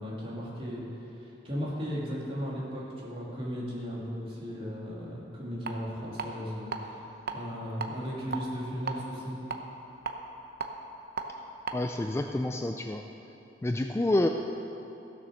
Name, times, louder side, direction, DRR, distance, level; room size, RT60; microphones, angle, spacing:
voice 1, 0.0-7.0 7.3-9.4, equal, 30° right, -5 dB, 2.7 m, -36 dB
sound 1, 5.7-5.8 6.2-6.8 7.1-7.4 7.8-8.9 9.5-11.2 11.6-11.7, right 5 dB, 55° right, 0.8 m, -35 dB
voice 2, 11.7-13.0 13.6-14.3, left 1 dB, 15° left, 5 dB, 0.3 m, -28 dB
15.5 x 7.0 x 6.4 m, 3.0 s
head